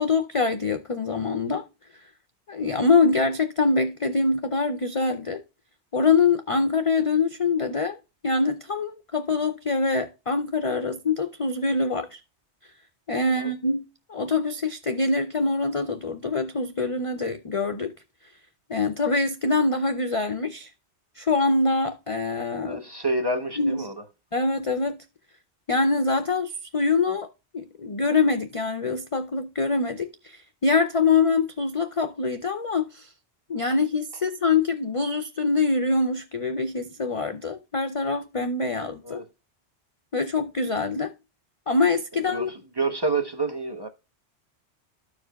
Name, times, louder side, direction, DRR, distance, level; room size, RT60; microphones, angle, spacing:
voice 1, 0.0-1.7 2.5-5.4 5.9-8.0 8.2-12.2 13.1-13.8 14.1-17.9 18.7-20.7 21.2-22.8 23.6-23.9 24.3-25.0 25.7-27.3 27.5-33.1 33.5-39.2 40.1-41.1 41.7-42.5, left 4 dB, 45° left, 0.4 m, -24 dB
voice 2, 22.6-24.0 33.5-33.8 39.0-39.2 42.1-43.9, right 2 dB, 25° right, 0.8 m, -29 dB
13.5 x 4.8 x 2.2 m
omnidirectional pair, 1.2 m